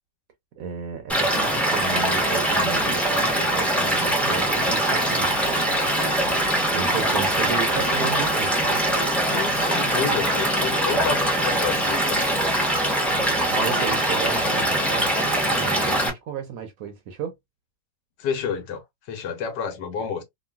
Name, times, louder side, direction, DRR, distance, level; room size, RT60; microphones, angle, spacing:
voice 1, 0.6-5.3 6.2-8.5 13.1-13.2 13.5-15.1 15.5-17.3, right 7 dB, 65° right, 0.9 m, -33 dB
Stream / Liquid, 1.1-16.1, right 1 dB, ahead, 0.3 m, -22 dB
voice 2, 9.3-12.2 18.2-20.2, left 7 dB, 80° left, 1.4 m, -30 dB
3.0 x 2.5 x 2.2 m
omnidirectional pair, 1.9 m